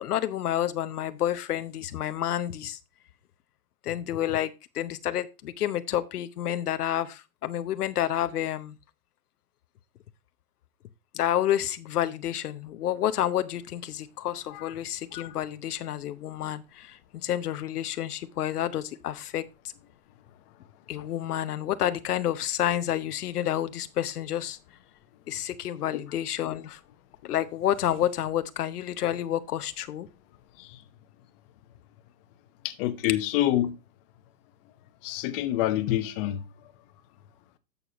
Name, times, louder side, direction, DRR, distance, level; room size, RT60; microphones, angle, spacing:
voice 1, 0.0-2.8 3.8-8.8 11.1-19.4 20.9-24.6 25.3-26.8 27.2-30.1, left 11 dB, 75° left, 0.8 m, -29 dB
voice 2, 32.6-33.7 35.0-36.4, left 13 dB, 35° left, 1.0 m, -27 dB
11.0 x 6.9 x 2.9 m
hypercardioid pair, 135°, 46 cm